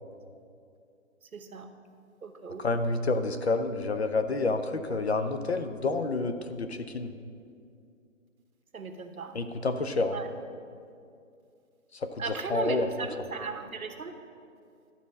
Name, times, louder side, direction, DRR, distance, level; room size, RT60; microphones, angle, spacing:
voice 1, 1.3-1.7 2.2-2.6 8.7-9.3 10.1-10.3 12.2-14.1, right 4 dB, 90° right, 7 dB, 1.1 m, -36 dB
voice 2, 2.6-7.1 9.3-10.2 11.9-12.9, left 3 dB, 50° left, 8 dB, 0.6 m, -29 dB
12.5 x 4.2 x 6.2 m, 2.4 s
hypercardioid pair, 165°, 41 cm